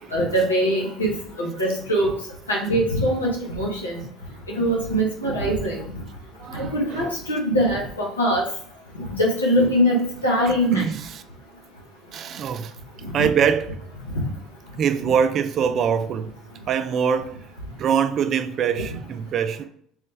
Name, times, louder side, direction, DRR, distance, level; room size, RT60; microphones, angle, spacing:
voice 1, 0.1-1.1 1.4-2.1 2.5-4.0 4.6-5.8 6.5-8.4 8.9-10.8 13.0-13.3, equal, 80° left, 1.2 m, -22 dB
voice 2, 6.4-7.1 10.5-11.2 12.1-12.7 13.1-13.9 14.8-16.3 16.7-17.4 17.8-19.6, right 7 dB, 45° right, 0.3 m, -24 dB
3.8 x 3.2 x 3.2 m
figure-of-eight pair, 60°, 0 cm